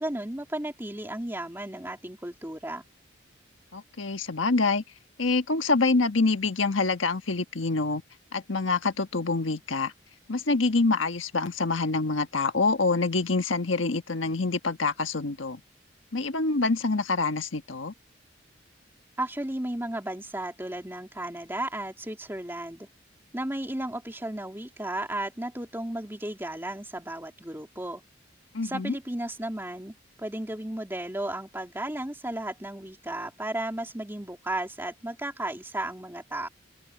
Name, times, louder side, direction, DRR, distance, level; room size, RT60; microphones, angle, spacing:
voice 1, 0.0-2.8 19.2-22.9 23.3-28.0 28.6-36.5, right 1 dB, 10° right, 3.0 m, -34 dB
voice 2, 3.7-4.8 5.2-8.0 8.3-9.9 10.3-15.6 16.1-17.9 28.5-28.9, left 3 dB, 85° left, 1.4 m, -26 dB
open air
head